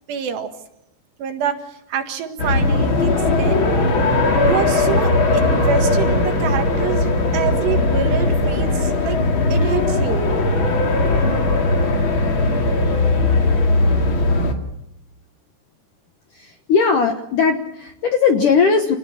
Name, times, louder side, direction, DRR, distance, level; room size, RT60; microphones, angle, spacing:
voice 1, 0.1-0.5 1.2-3.1 3.4-3.7 4.4-9.2 9.5-10.3 11.2-11.4, right 8 dB, 65° right, 6 dB, 3.6 m, -26 dB
sound 1, 2.4-14.5, left 2 dB, 40° left, 2.0 m, -18 dB
voice 2, 16.3-19.0, left 5 dB, 65° left, 5 dB, 2.2 m, -18 dB
28.5 x 18.5 x 6.6 m, 0.82 s
omnidirectional pair, 5.5 m